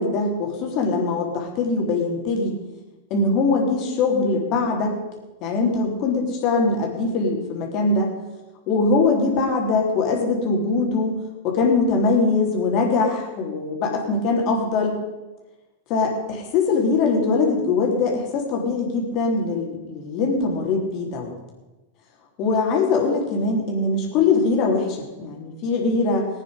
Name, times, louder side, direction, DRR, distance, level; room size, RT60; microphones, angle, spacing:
voice 1, 0.0-2.5 3.1-5.0 5.4-8.1 8.7-15.0 15.9-21.3 22.4-26.3, left 3 dB, 45° left, 0 dB, 3.5 m, -22 dB
19.0 x 9.4 x 5.2 m, 1.1 s
hypercardioid pair, 95°, 0 cm